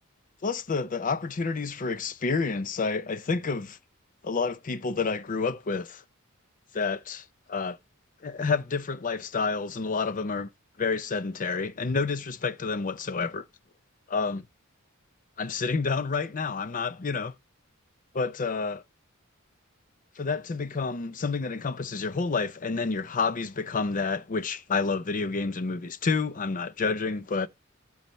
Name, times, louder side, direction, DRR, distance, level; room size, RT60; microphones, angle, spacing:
voice 1, 0.4-3.8 4.2-6.0 6.7-7.8 8.2-10.5 10.8-13.4 14.1-14.4 15.4-17.3 18.1-18.8 20.2-27.5, left 4 dB, 40° left, 0.6 m, -29 dB
13.5 x 5.6 x 3.0 m
head